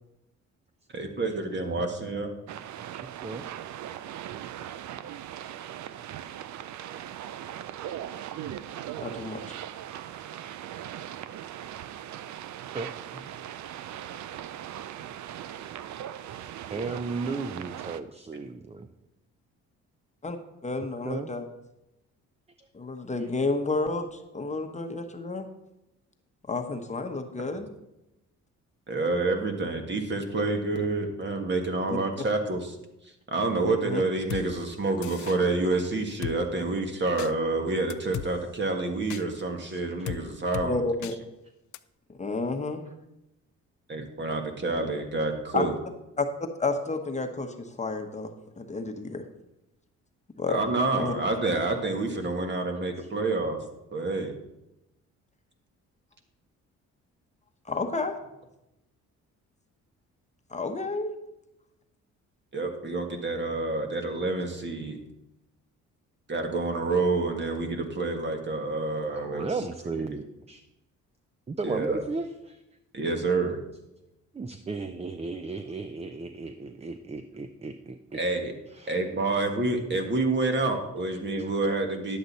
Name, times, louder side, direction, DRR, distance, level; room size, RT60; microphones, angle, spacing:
voice 1, 0.9-2.3 28.9-32.8 33.3-40.8 43.9-45.7 50.5-53.6 53.9-54.3 62.5-65.0 66.3-69.5 71.6-72.0 72.9-73.6 78.1-78.5 78.9-82.2, right 3 dB, 35° right, 5 dB, 1.6 m, -28 dB
voice 2, 1.5-1.8 3.2-3.4 12.7-12.9 16.7-18.9 21.0-21.3 22.6-22.7 23.2-23.3 39.7-39.8 53.0-53.1 69.1-70.6 71.5-72.6 74.3-78.2 78.7-79.0, right 3 dB, 20° right, 9 dB, 0.5 m, -35 dB
sound 1, 2.5-18.0, right 11 dB, 70° right, 0.6 m, -39 dB
voice 3, 9.0-9.4 20.2-20.4 20.6-21.4 22.7-25.5 26.5-27.7 31.9-32.0 33.7-34.0 40.6-41.1 42.2-42.8 45.5-45.6 46.2-46.3 46.6-48.3 48.6-49.2 50.4-50.6 51.0-51.1 57.6-58.2 60.5-61.1, left 3 dB, 25° left, 5 dB, 1.0 m, -30 dB
Drum kit, 34.3-34.4 35.0-35.4 36.2-36.4 37.2-37.3 37.9-38.3 39.1-39.2 40.1-40.2 40.5-40.7 41.0-41.1 41.7-41.8, left 13 dB, 75° left, 0.5 m, -35 dB
10.5 x 7.8 x 4.1 m, 0.91 s
cardioid pair, 90°, 30 cm